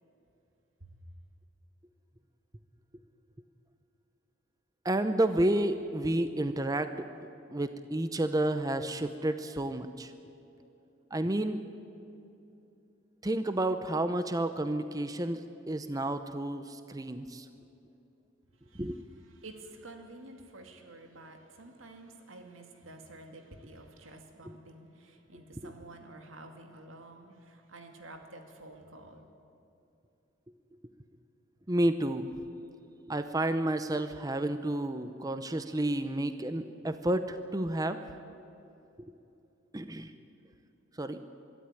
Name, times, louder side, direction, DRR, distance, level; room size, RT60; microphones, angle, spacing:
voice 1, 4.8-6.9 7.5-10.1 11.1-11.6 13.2-15.4 15.7-17.5 18.8-19.0 25.6-25.7 31.7-32.3 33.1-38.0 39.7-40.1 41.0-41.2, right 1 dB, 20° right, 10 dB, 0.7 m, -30 dB
voice 2, 18.6-29.3, right 2 dB, 90° right, 4 dB, 2.5 m, -50 dB
23.5 x 13.0 x 9.9 m, 2.8 s
head